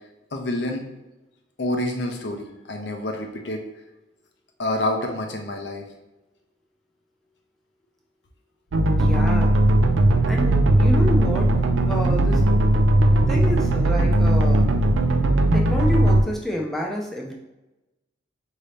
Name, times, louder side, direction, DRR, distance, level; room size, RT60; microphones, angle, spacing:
voice 1, 0.3-0.8 1.6-3.6 4.6-5.9, left 1 dB, 60° left, 3 dB, 0.7 m, -27 dB
sound 1, 8.7-16.2, right 1 dB, 80° right, 0.5 m, -18 dB
voice 2, 8.9-9.6 10.3-11.5 11.8-12.4 13.3-14.7 15.5-17.3, equal, ahead, -2 dB, 0.6 m, -28 dB
5.1 x 2.8 x 3.3 m, 1.0 s
head